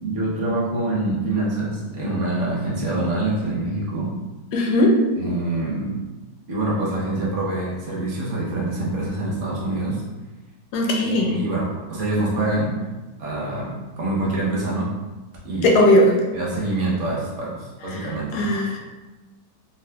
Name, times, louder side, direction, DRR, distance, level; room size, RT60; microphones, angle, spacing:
voice 1, 0.0-4.1 5.2-6.0 6.5-10.0 11.0-12.8 13.2-14.9 15.4-15.8 16.3-18.4, right 2 dB, 55° right, -5 dB, 1.0 m, -25 dB
voice 2, 4.5-5.0 10.7-11.4 15.6-16.1 18.3-18.8, left 1 dB, 75° left, 0 dB, 1.1 m, -17 dB
4.2 x 2.1 x 2.2 m, 1.2 s
omnidirectional pair, 1.8 m